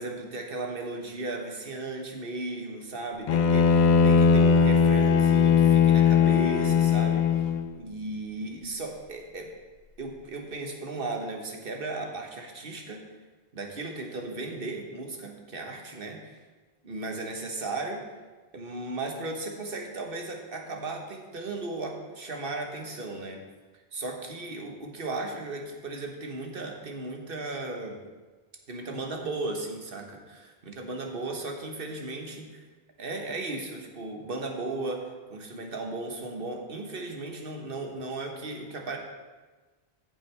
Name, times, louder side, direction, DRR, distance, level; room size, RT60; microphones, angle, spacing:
voice 1, 0.0-7.4 7.8-9.5 10.0-13.1 13.5-16.4 16.8-18.1 18.5-23.4 23.9-28.0 28.7-32.6 33.0-39.0, right 2 dB, 60° right, 2 dB, 1.5 m, -36 dB
Bowed string instrument, 3.3-7.7, left 6 dB, 55° left, 0.5 m, -20 dB
14.0 x 7.5 x 3.4 m, 1.3 s
omnidirectional pair, 1.1 m